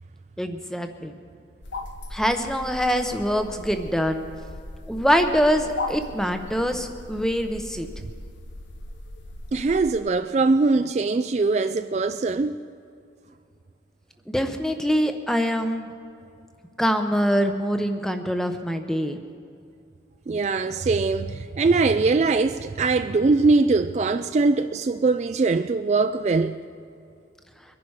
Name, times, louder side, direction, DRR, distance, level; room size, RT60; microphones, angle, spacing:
voice 1, 0.4-1.2 2.1-4.3 4.9-7.9 14.3-15.9 16.8-19.2, equal, 5° left, 0.8 m, -24 dB
sound 1, 1.6-10.0, left 2 dB, 90° left, 1.0 m, -38 dB
voice 2, 9.5-12.6 20.3-26.6, right 3 dB, 35° right, 0.3 m, -22 dB
23.5 x 11.0 x 4.8 m
head